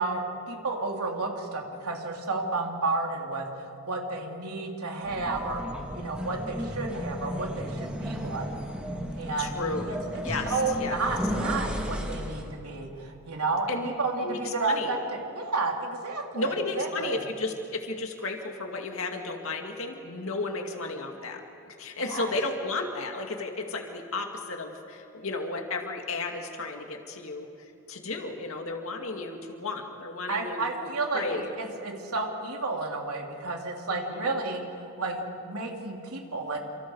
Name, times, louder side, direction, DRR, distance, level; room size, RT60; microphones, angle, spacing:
voice 1, 0.0-3.5 3.9-5.6 5.9-8.5 9.2-9.6 9.9-17.2 22.0-22.3 30.3-31.2 31.6-34.6 35.0-36.6, right 3 dB, 90° right, 0 dB, 3.4 m, -31 dB
sound 1, 5.0-12.5, equal, 5° right, 2.5 m, -34 dB
voice 2, 9.4-9.9 10.2-11.0 13.7-13.9 14.2-14.9 16.3-31.5 33.9-34.3, left 3 dB, 65° left, 2 dB, 2.3 m, -34 dB
29.5 x 27.0 x 4.8 m, 2.7 s
head